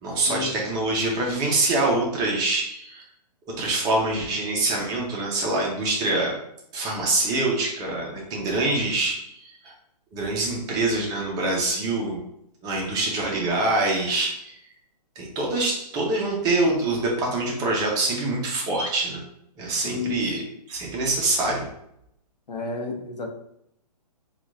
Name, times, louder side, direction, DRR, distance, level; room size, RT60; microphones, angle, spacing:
voice 1, 0.0-3.1 3.6-6.4 6.7-9.7 10.1-12.2 12.6-14.6 15.2-19.2 19.6-20.4 20.7-21.7, right 2 dB, 20° right, -2 dB, 0.7 m, -25 dB
voice 2, 19.8-20.4 22.5-23.3, left 4 dB, 90° left, 1 dB, 0.9 m, -31 dB
4.2 x 2.4 x 2.5 m, 0.75 s
hypercardioid pair, 145°, 21 cm